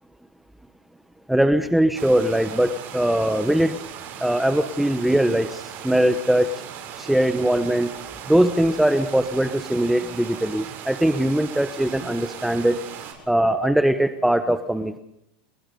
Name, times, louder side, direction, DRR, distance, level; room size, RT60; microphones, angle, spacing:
voice 1, 1.3-3.8 4.2-6.5 7.0-7.9 8.3-12.8 13.3-15.0, right 1 dB, ahead, 9 dB, 1.2 m, -21 dB
sound 1, 1.9-13.1, right 8 dB, 45° right, 7.4 m, -38 dB
29.5 x 20.0 x 5.5 m, 0.79 s
supercardioid pair, 115°, 5 cm